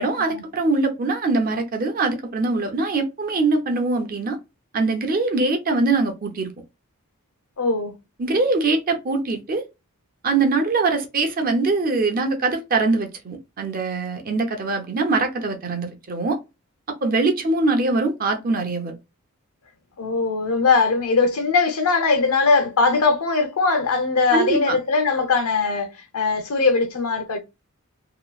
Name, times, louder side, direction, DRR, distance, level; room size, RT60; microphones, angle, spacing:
voice 1, 0.0-4.4 4.7-6.5 8.2-9.6 10.2-16.4 17.0-19.0 24.3-24.8, right 3 dB, 40° right, 0.6 m, -22 dB
voice 2, 7.6-7.9 20.0-25.9 26.1-27.4, left 4 dB, 85° left, 0.8 m, -20 dB
2.9 x 2.2 x 2.3 m
head